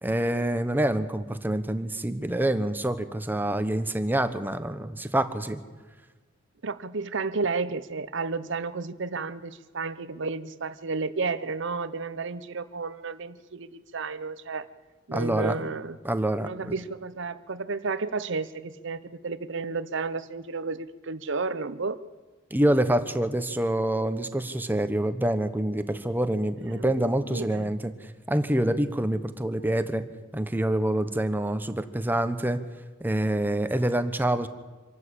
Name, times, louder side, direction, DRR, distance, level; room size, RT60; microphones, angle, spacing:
voice 1, 0.0-5.6 15.1-15.6 16.0-16.8 22.5-27.9 28.3-30.0 30.3-32.6 33.0-34.5, right 1 dB, 10° right, 10 dB, 1.1 m, -26 dB
voice 2, 6.6-14.7 15.1-16.0 16.4-22.0 26.7-27.7, right 4 dB, 65° right, 14 dB, 0.9 m, -32 dB
26.0 x 12.0 x 8.5 m, 1.4 s
head